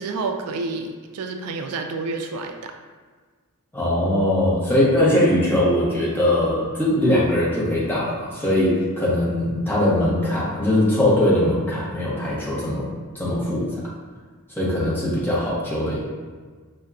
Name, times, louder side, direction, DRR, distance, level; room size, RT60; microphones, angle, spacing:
voice 1, 0.0-2.7, right 3 dB, 80° right, 5 dB, 0.3 m, -29 dB
voice 2, 3.7-12.9 13.1-13.6 14.5-16.0, left 1 dB, 10° left, -8 dB, 0.9 m, -21 dB
5.3 x 2.2 x 2.4 m, 1.5 s
head